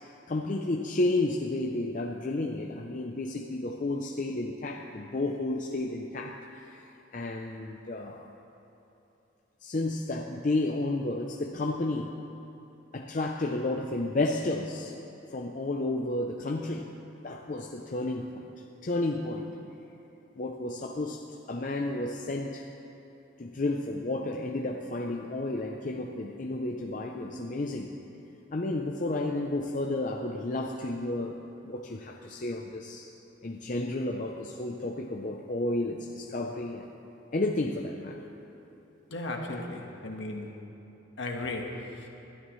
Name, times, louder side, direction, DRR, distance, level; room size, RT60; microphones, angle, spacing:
voice 1, 0.3-6.9 7.1-8.3 9.6-12.2 12.9-14.9 15.3-16.8 17.2-18.4 18.8-19.5 20.4-21.2 21.5-22.7 23.4-27.9 28.5-31.4 31.6-33.1 33.4-36.9 37.3-38.2, left 2 dB, 40° left, 1 dB, 0.6 m, -31 dB
voice 2, 39.1-40.5 41.2-42.1, left 2 dB, 70° left, 1 dB, 1.5 m, -36 dB
20.0 x 12.5 x 3.2 m, 3.0 s
head